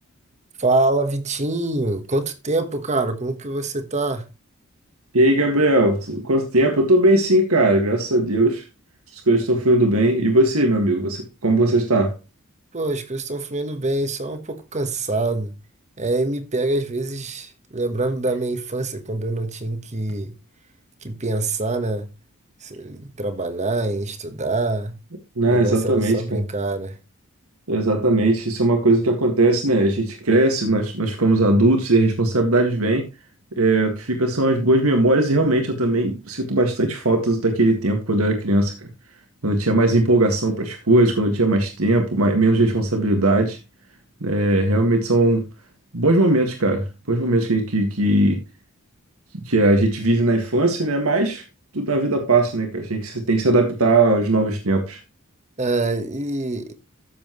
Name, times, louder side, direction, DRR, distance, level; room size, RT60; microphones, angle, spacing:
voice 1, 0.6-4.3 12.7-15.5 16.0-20.3 21.0-22.1 22.6-25.0 25.5-27.0 55.6-56.7, right 2 dB, 35° right, 1.3 m, -25 dB
voice 2, 5.1-8.6 9.1-12.2 25.4-26.4 27.7-33.1 33.5-38.9 39.4-43.6 44.2-45.5 45.9-48.4 49.3-51.4 51.7-55.0, right 2 dB, 75° right, 1.9 m, -19 dB
14.0 x 7.3 x 3.1 m
head